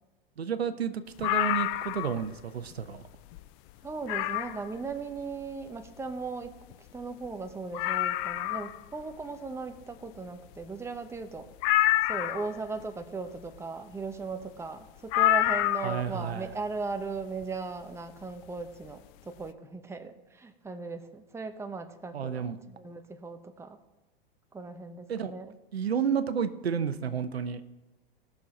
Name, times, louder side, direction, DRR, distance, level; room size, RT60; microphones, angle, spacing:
voice 1, 0.4-3.0 15.8-16.5 22.1-22.6 25.1-25.3 25.7-27.6, right 7 dB, 90° right, 11 dB, 0.7 m, -31 dB
sound 1, 1.2-2.3 2.7-2.8 3.3-3.4 4.1-4.7 6.4-6.5 6.7-6.8 7.2-7.3 7.7-8.8 11.6-12.6 15.1-16.1 17.4-17.5, left 15 dB, 40° left, 0.5 m, -27 dB
voice 2, 3.8-6.6 6.9-11.5 12.1-23.8 24.5-25.6, right 4 dB, 10° right, 7 dB, 0.9 m, -38 dB
17.5 x 6.3 x 4.2 m, 1.1 s
hypercardioid pair, 100°, 30 cm